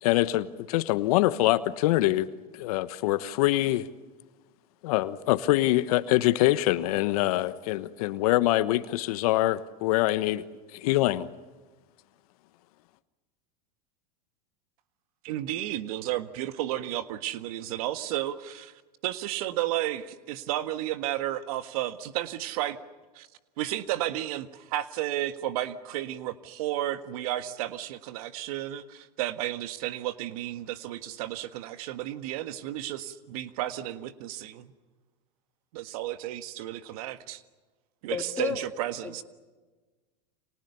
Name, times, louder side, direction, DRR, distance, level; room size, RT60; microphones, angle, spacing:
voice 1, 0.0-3.9 4.8-10.4 10.7-11.3, left 16 dB, 65° left, 1.2 m, -24 dB
voice 2, 15.2-22.8 23.1-23.3 23.6-34.7 35.7-37.4 38.0-39.2, right 13 dB, 65° right, 1.6 m, -33 dB
voice 3, 38.1-38.6 39.0-39.2, left 6 dB, 10° left, 3.9 m, -32 dB
29.5 x 27.0 x 7.0 m
hypercardioid pair, 100°, 20 cm